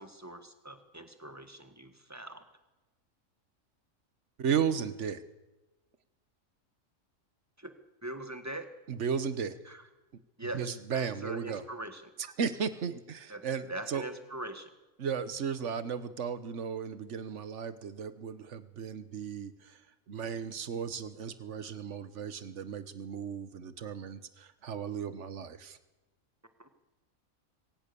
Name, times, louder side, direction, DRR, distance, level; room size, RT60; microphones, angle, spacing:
voice 1, 0.0-2.4 7.6-7.7 8.0-8.7 9.6-9.8 10.4-12.1 13.3-14.7 26.6-26.7, right 1 dB, 10° right, 7 dB, 1.6 m, -42 dB
voice 2, 4.4-5.2 8.9-9.6 10.5-11.6 12.4-14.0 15.0-19.8 20.1-25.8, right 7 dB, 60° right, 13 dB, 1.4 m, -35 dB
23.0 x 17.5 x 7.0 m, 1.1 s
omnidirectional pair, 1.4 m